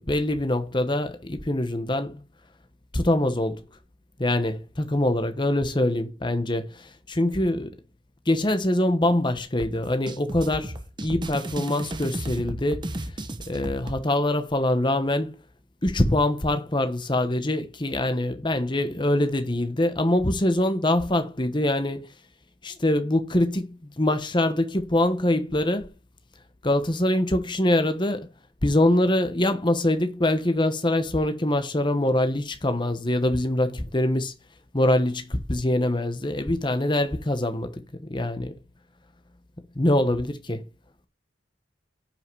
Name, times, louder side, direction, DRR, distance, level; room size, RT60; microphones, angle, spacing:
voice 1, 0.0-2.2 2.9-3.6 4.2-7.7 8.3-13.1 13.5-15.3 15.8-22.1 22.6-25.9 26.6-28.3 28.6-34.3 34.7-38.6 39.6-40.7, left 1 dB, 25° left, 1.2 m, -24 dB
sound 1, 9.6-14.0, right 1 dB, 25° right, 1.2 m, -34 dB
10.5 x 5.9 x 4.8 m
head